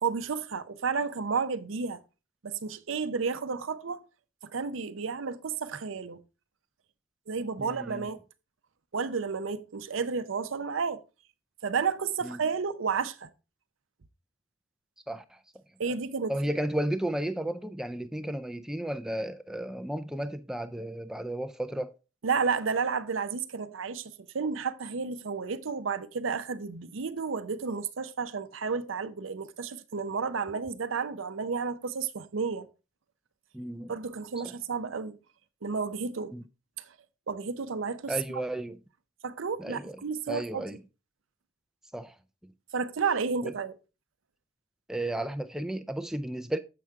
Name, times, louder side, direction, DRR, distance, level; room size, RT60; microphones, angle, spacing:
voice 1, 0.0-2.0 2.4-4.1 4.5-6.2 7.3-8.2 8.9-11.0 11.6-13.3 15.8-16.3 22.2-32.7 33.9-35.2 35.6-36.3 37.3-38.1 39.2-40.8 42.7-43.8, right 5 dB, 80° right, 0.6 m, -31 dB
voice 2, 7.6-8.1 12.2-12.4 15.1-16.0 16.3-21.9 33.5-33.9 34.4-34.5 36.3-36.4 38.1-38.8 39.6-40.0 40.3-40.8 41.9-42.1 42.4-42.5 43.4-43.5 44.9-46.6, right 1 dB, 5° right, 0.4 m, -34 dB
7.6 x 5.8 x 3.5 m
head